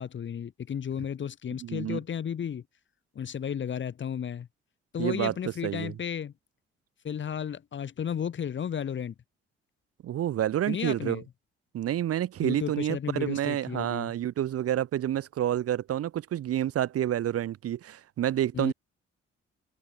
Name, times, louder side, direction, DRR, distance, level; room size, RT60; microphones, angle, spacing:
voice 1, 0.0-2.6 3.1-4.5 4.9-6.3 7.0-9.1 10.7-11.2 12.4-14.1 18.5-18.7, left 8 dB, 40° left, 0.8 m, -33 dB
voice 2, 1.6-2.0 5.0-5.3 5.6-5.9 10.0-11.2 11.7-18.7, right 11 dB, 50° right, 0.7 m, -29 dB
hypercardioid pair, 45°, 29 cm